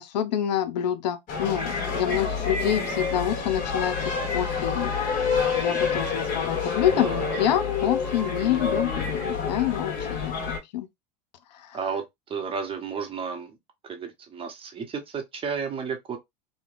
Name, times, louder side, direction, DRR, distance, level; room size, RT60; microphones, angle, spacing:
voice 1, 0.0-4.9 5.5-10.3 10.7-10.9, left 10 dB, 80° left, 0.5 m, -27 dB
sound 1, 1.3-10.6, left 5 dB, 40° left, 1.1 m, -28 dB
voice 2, 7.0-7.4 11.7-12.0 12.3-13.5 13.9-16.2, right 6 dB, 25° right, 0.8 m, -32 dB
3.2 x 2.0 x 2.5 m
hypercardioid pair, 100°, 21 cm